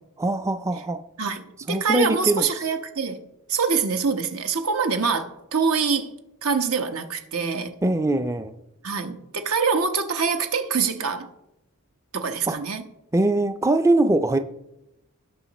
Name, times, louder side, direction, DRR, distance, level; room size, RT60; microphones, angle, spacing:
voice 1, 0.2-1.0 1.7-2.5 7.8-8.5 12.5-12.6 13.1-14.4, right 2 dB, 15° right, 0.4 m, -22 dB
voice 2, 1.2-3.2 3.5-6.1 6.4-7.7 8.8-11.3 12.1-12.9, right 5 dB, 80° right, 1.1 m, -25 dB
17.0 x 5.8 x 4.1 m
head